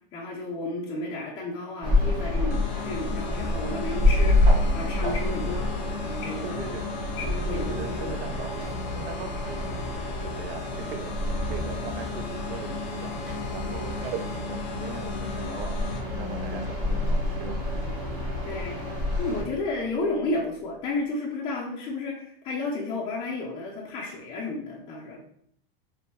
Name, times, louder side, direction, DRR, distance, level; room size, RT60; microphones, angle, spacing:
voice 1, 0.1-5.7 6.0-6.6 7.2-8.2 18.4-18.9 19.2-25.2, left 2 dB, 15° left, -3 dB, 0.4 m, -32 dB
sound 1, 1.8-19.4, left 1 dB, 15° right, 1.0 m, -28 dB
sound 2, 2.5-16.0, left 11 dB, 85° left, 0.6 m, -39 dB
sound 3, 3.2-20.9, right 1 dB, 50° right, 1.2 m, -41 dB
voice 2, 6.4-6.9 7.5-13.2 13.5-17.6, right 6 dB, 65° right, 8 dB, 0.5 m, -40 dB
3.3 x 3.1 x 2.9 m, 0.66 s
supercardioid pair, 155°, 30 cm